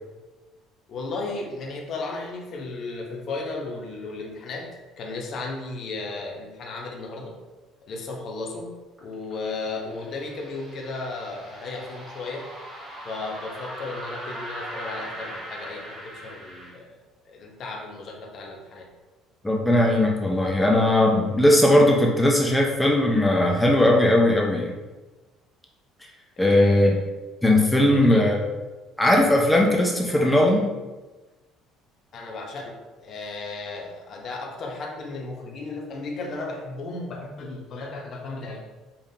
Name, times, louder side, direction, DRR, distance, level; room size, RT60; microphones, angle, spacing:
voice 1, 0.9-4.7 5.0-7.3 7.9-8.7 9.0-12.5 13.0-17.0 17.2-18.9 26.4-27.0 27.9-28.3 32.1-32.8 33.0-38.6, left 3 dB, 40° left, 0 dB, 0.7 m, -35 dB
sound 1, 9.0-16.7, equal, 20° right, 1.3 m, -39 dB
voice 2, 19.4-24.7 26.4-27.0 27.4-28.4 29.0-30.7, left 1 dB, 5° left, -1 dB, 0.4 m, -19 dB
5.2 x 2.3 x 2.7 m, 1.2 s
cardioid pair, 155°, 0 cm